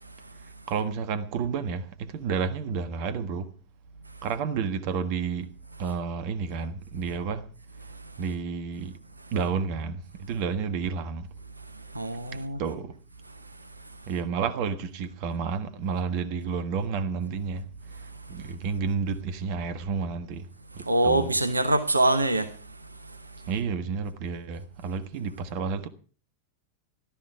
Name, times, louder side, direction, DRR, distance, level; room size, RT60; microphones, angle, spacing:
voice 1, 0.7-3.5 4.2-5.5 5.8-7.5 8.2-9.0 9.3-11.3 12.3-13.0 14.1-20.5 20.7-21.3 23.5-25.9, right 5 dB, 45° right, 1.5 m, -31 dB
voice 2, 11.8-12.6 18.3-18.5 20.8-23.5, right 2 dB, 80° right, 1.0 m, -26 dB
15.5 x 12.5 x 4.7 m
figure-of-eight pair, 90°, 0 cm